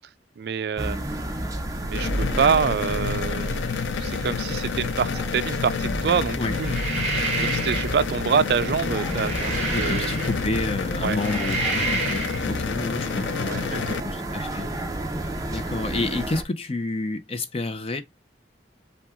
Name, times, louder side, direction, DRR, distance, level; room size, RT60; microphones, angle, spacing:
voice 1, 0.4-1.0 1.8-6.8 7.4-10.1 11.0-11.2 13.4-14.1, right 6 dB, 60° right, 0.3 m, -26 dB
sound 1, 0.8-16.4, right 1 dB, 20° right, 0.7 m, -31 dB
sound 2, 1.9-14.0, left 6 dB, 90° left, 0.4 m, -30 dB
sound 3, 6.5-8.0 8.8-10.6 11.1-12.4, right 3 dB, 40° right, 2.3 m, -29 dB
voice 2, 9.7-14.7 15.5-18.0, left 2 dB, 35° left, 0.6 m, -30 dB
5.6 x 2.3 x 3.6 m
head